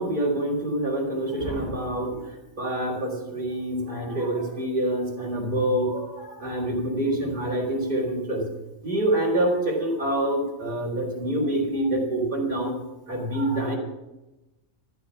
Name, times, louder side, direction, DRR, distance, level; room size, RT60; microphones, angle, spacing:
voice 1, 0.0-8.5 8.8-12.8 13.1-13.8, right 1 dB, 35° right, -2 dB, 4.2 m, -26 dB
14.5 x 12.5 x 5.9 m, 1.0 s
omnidirectional pair, 1.4 m